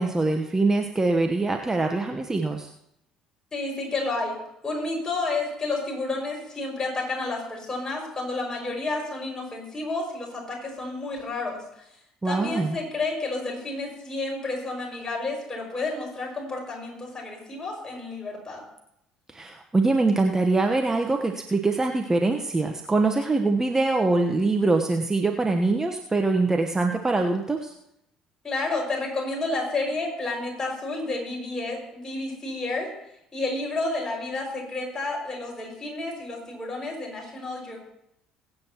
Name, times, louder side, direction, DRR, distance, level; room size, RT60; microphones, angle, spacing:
voice 1, 0.0-2.7 12.2-12.8 19.3-27.7, right 3 dB, 15° right, 3 dB, 1.1 m, -23 dB
voice 2, 3.5-4.3 4.6-11.6 12.2-18.6 28.4-32.9 33.3-37.8, left 2 dB, 20° left, -1 dB, 6.0 m, -30 dB
22.0 x 8.9 x 3.0 m, 0.79 s
hypercardioid pair, 55°, 3 cm